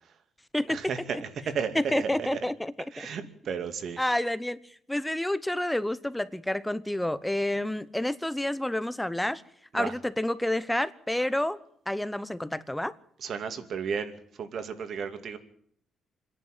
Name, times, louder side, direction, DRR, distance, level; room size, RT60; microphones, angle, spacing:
voice 1, 0.7-1.3 1.5-2.2 2.9-4.0 9.7-9.9 13.2-14.1 14.4-15.4, right 6 dB, 60° right, 9 dB, 2.5 m, -33 dB
voice 2, 1.7-3.1 4.0-4.6 4.9-9.4 9.7-11.6 11.9-12.9, left 1 dB, 5° left, 16 dB, 1.0 m, -29 dB
26.0 x 11.0 x 9.1 m, 0.66 s
cardioid pair, 90°, 0 cm